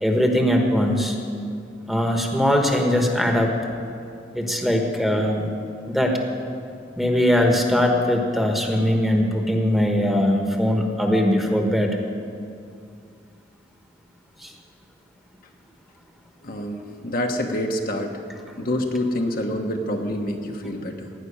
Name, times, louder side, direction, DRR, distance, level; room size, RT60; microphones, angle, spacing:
voice 1, 0.0-1.2 1.9-3.5 4.3-5.5 5.9-6.2 7.0-12.0 14.4-14.5, equal, ahead, 2 dB, 1.3 m, -21 dB
voice 2, 16.4-18.2 18.6-21.1, left 1 dB, 50° left, 2 dB, 1.2 m, -27 dB
17.0 x 6.0 x 10.0 m, 2.4 s
head